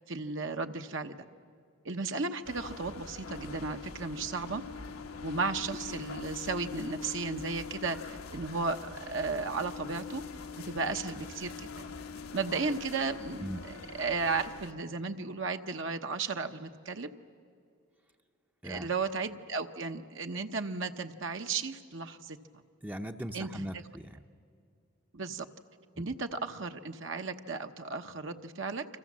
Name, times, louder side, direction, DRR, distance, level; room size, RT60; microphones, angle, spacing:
voice 1, 0.1-1.2 1.8-4.6 5.2-10.2 10.6-11.8 12.3-17.1 18.6-22.6 23.3-23.7 25.1-25.5 26.0-28.9, right 4 dB, 60° right, 6 dB, 1.0 m, -34 dB
sound 1, 2.4-14.7, left 4 dB, 85° left, 1.4 m, -43 dB
voice 2, 22.8-24.2 26.0-26.1, equal, 10° right, 5 dB, 0.7 m, -39 dB
30.0 x 25.5 x 7.4 m, 2.4 s
head